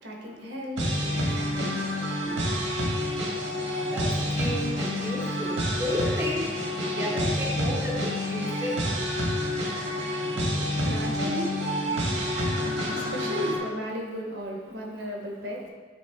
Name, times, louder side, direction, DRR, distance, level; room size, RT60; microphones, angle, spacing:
voice 1, 0.0-2.7 10.8-11.6 12.9-15.7, equal, 65° right, 0 dB, 1.0 m, -35 dB
sound 1, 0.8-13.6, left 1 dB, 80° right, 1.4 m, -28 dB
voice 2, 4.4-6.5 6.8-8.8, left 1 dB, 10° right, -4 dB, 0.7 m, -32 dB
8.5 x 3.6 x 3.4 m, 1.4 s
head